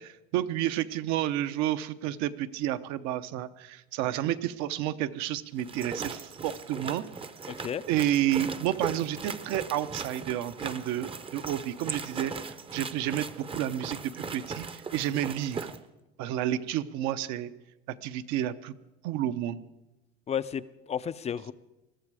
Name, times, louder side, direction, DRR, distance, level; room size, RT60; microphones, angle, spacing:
voice 1, 0.0-7.0 7.9-15.7 16.2-17.5 18.0-18.7 19.0-19.6, right 12 dB, 65° right, 11 dB, 0.9 m, -30 dB
sound 1, 5.6-15.8, right 4 dB, 20° right, 0.7 m, -39 dB
voice 2, 7.5-7.8 20.3-21.5, left 8 dB, 20° left, 16 dB, 0.4 m, -33 dB
21.0 x 13.0 x 4.9 m, 1.0 s
supercardioid pair, 125°, 30 cm